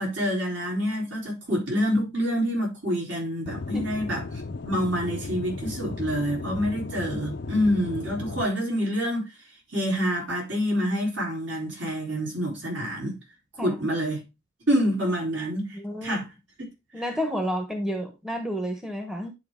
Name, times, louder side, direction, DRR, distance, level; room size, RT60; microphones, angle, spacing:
voice 1, 0.0-4.2 4.6-9.3 9.7-13.2 13.6-14.2 14.7-16.3, equal, 65° right, 4.0 m, -27 dB
Aircraft / Engine, 3.5-8.5, left 3 dB, 60° left, 0.6 m, -35 dB
voice 2, 15.7-16.2 16.9-19.3, equal, 5° right, 1.0 m, -30 dB
10.5 x 4.1 x 3.7 m
head